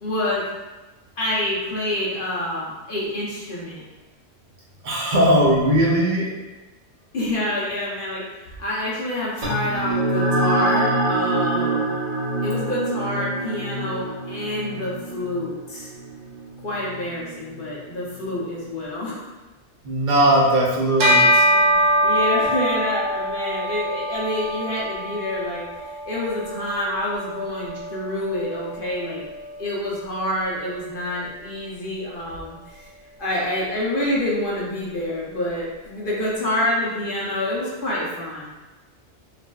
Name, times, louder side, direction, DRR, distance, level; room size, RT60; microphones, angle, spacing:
voice 1, 0.0-0.5 1.2-3.8 7.1-11.8 12.4-15.9 16.6-19.3 21.5-29.2 29.6-32.9 33.2-38.5, left 1 dB, 55° left, -5 dB, 0.7 m, -27 dB
voice 2, 4.8-6.3 19.8-21.5, right 1 dB, 50° right, -5 dB, 0.7 m, -19 dB
sound 1, 9.4-18.3, right 2 dB, 30° right, 1.1 m, -26 dB
Bell, 21.0-30.7, equal, 85° right, 1.0 m, -24 dB
3.2 x 2.5 x 2.2 m, 1.1 s
omnidirectional pair, 1.2 m